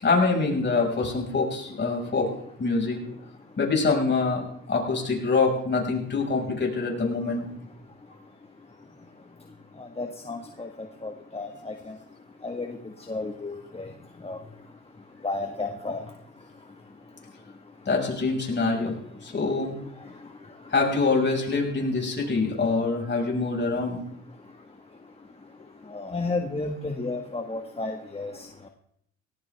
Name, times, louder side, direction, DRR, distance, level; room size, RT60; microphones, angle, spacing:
voice 1, 0.0-3.0 3.6-7.5 17.9-19.7 20.7-24.0, left 3 dB, 35° left, 0 dB, 5.7 m, -25 dB
voice 2, 9.8-10.7 11.0-11.7 12.4-12.8 13.1-13.9 14.2-14.4 15.2-16.0 25.9-28.3, left 3 dB, 20° left, 3 dB, 1.6 m, -32 dB
18.0 x 17.5 x 3.5 m, 0.70 s
cardioid pair, 90°, 30 cm